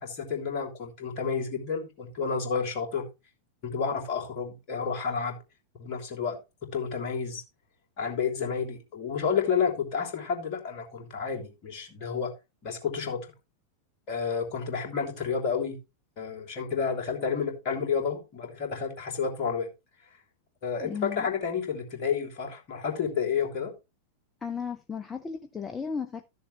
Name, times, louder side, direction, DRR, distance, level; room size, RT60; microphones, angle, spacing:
voice 1, 0.0-3.1 3.6-5.4 5.8-7.4 8.0-12.3 12.6-13.2 14.1-15.8 16.2-19.7 20.6-23.7, left 6 dB, 40° left, 3.1 m, -30 dB
voice 2, 20.8-21.3 24.4-26.2, left 6 dB, 15° left, 0.8 m, -35 dB
13.0 x 6.9 x 3.2 m
figure-of-eight pair, 90°, 0 cm